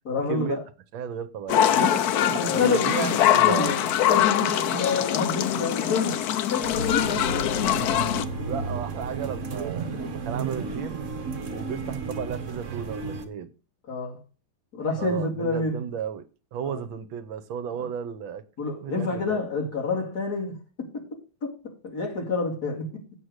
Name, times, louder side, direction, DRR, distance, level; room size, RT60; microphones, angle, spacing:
voice 1, 0.0-0.6 1.7-3.8 4.1-6.2 6.5-7.4 8.0-8.5 13.9-14.2 14.7-15.8 16.7-16.8 17.8-17.9 18.6-21.0 21.4-23.0, left 4 dB, 45° left, 3.3 m, -28 dB
voice 2, 0.9-1.6 2.3-3.7 8.4-11.0 11.5-13.5 15.0-16.3 16.5-18.4 18.8-19.4, right 8 dB, 70° right, 1.5 m, -33 dB
sound 1, 1.5-8.2, left 11 dB, 70° left, 0.9 m, -23 dB
sound 2, 6.6-13.2, right 5 dB, 40° right, 1.4 m, -34 dB
sound 3, 6.7-9.7, left 1 dB, 90° left, 3.3 m, -37 dB
8.0 x 7.5 x 6.4 m
omnidirectional pair, 2.3 m